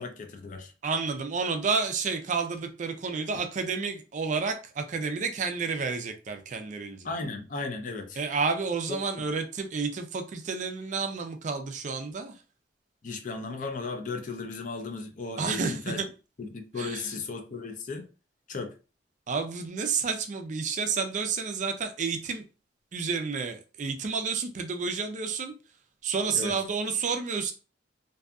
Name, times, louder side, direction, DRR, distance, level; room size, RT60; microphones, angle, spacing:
voice 1, 0.0-0.7 7.0-8.2 8.9-9.0 13.0-16.0 16.4-18.1 18.5-18.7 26.3-26.5, left 3 dB, 45° left, 0.4 m, -35 dB
voice 2, 0.8-7.1 8.2-12.4 15.4-16.1 16.8-17.2 19.3-22.4 22.9-25.6 26.0-27.5, right 5 dB, 40° right, 0.4 m, -30 dB
2.6 x 2.4 x 2.2 m
head